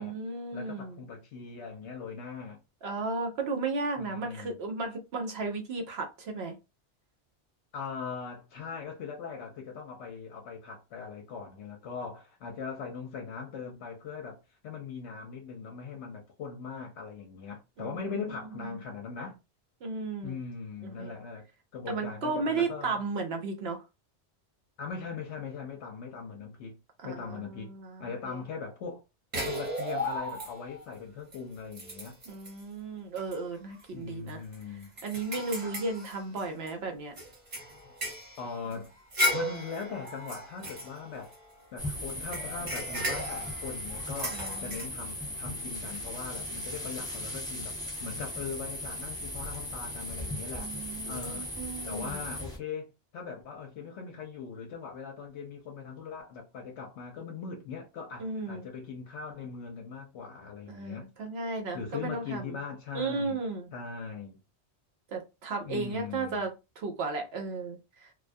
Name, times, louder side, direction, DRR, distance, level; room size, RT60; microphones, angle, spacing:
voice 1, 0.0-1.0 2.8-6.5 17.8-18.4 18.6-18.7 19.8-20.4 20.8-21.1 21.9-23.8 27.0-28.4 32.3-34.4 35.0-37.1 44.3-44.8 50.5-52.3 58.2-58.6 60.7-62.6 62.9-63.7 65.1-68.1, right 3 dB, 65° right, 0.8 m, -35 dB
voice 2, 0.5-2.6 4.0-4.6 7.7-14.4 14.6-19.4 20.2-21.4 21.7-23.0 24.8-26.8 27.0-27.7 28.0-29.0 29.3-32.2 33.9-34.9 37.8-37.9 38.4-38.9 39.3-41.3 41.7-50.7 51.1-51.5 51.8-61.1 61.7-63.4 63.7-64.4 65.6-66.5, left 5 dB, 75° left, 0.9 m, -40 dB
sound 1, 29.3-30.8 31.3-31.4 31.7-32.6 33.2-33.4 33.7-33.8 34.3-36.7 37.2-41.6 42.1-44.9, equal, 40° right, 0.9 m, -35 dB
sound 2, 41.8-52.6, left 1 dB, 5° left, 0.8 m, -38 dB
2.3 x 2.2 x 2.5 m
omnidirectional pair, 1.2 m